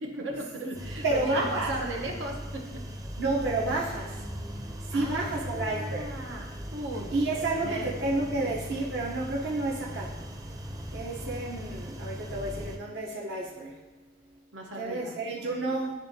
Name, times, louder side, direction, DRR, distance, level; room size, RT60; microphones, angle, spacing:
voice 1, 0.0-2.8 4.9-8.0 14.5-15.1, right 1 dB, 90° right, 0 dB, 1.0 m, -36 dB
sound 1, 0.7-12.8, equal, 20° right, 0.5 m, -39 dB
voice 2, 1.0-1.7 3.2-4.3 4.8-6.2 7.1-10.1 10.9-13.8 14.7-15.9, right 2 dB, 60° right, -4 dB, 0.8 m, -30 dB
10.5 x 3.6 x 2.7 m, 1.2 s
head